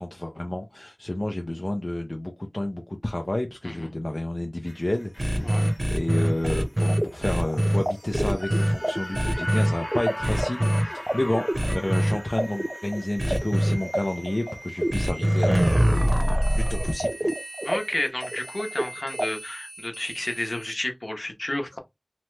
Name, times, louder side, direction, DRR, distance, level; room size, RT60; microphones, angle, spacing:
voice 1, 0.0-11.4 11.7-16.0 16.5-17.3, left 1 dB, 50° left, 0.4 m, -30 dB
sound 1, 4.7-17.0 17.3-17.4, left 1 dB, 30° left, 1.1 m, -41 dB
sound 2, 5.2-7.8 8.1-8.7 9.1-9.7 10.2-10.8 11.5-12.1 13.2-13.7 14.9-20.7, equal, 45° right, 0.8 m, -25 dB
voice 2, 5.4-5.7 17.6-21.8, left 1 dB, 70° left, 0.8 m, -31 dB
sound 3, 6.4-19.2, right 1 dB, 30° right, 0.3 m, -32 dB
2.9 x 2.1 x 3.1 m
wide cardioid pair, 40°, 0 cm